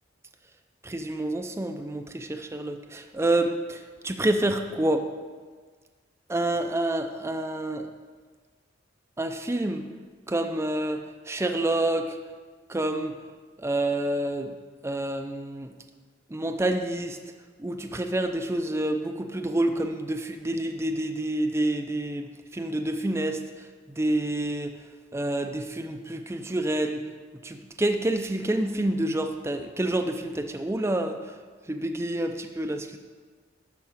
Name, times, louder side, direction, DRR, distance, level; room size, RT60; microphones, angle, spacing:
voice 1, 0.8-5.1 6.3-7.9 9.2-9.8 10.3-12.2 12.7-13.1 13.6-14.6 14.8-15.7 16.3-17.2 17.6-23.4 23.9-24.7 25.1-27.0 27.4-31.3 31.7-33.0, right 1 dB, 15° right, 5 dB, 0.5 m, -28 dB
12.0 x 4.9 x 7.3 m, 1.5 s
head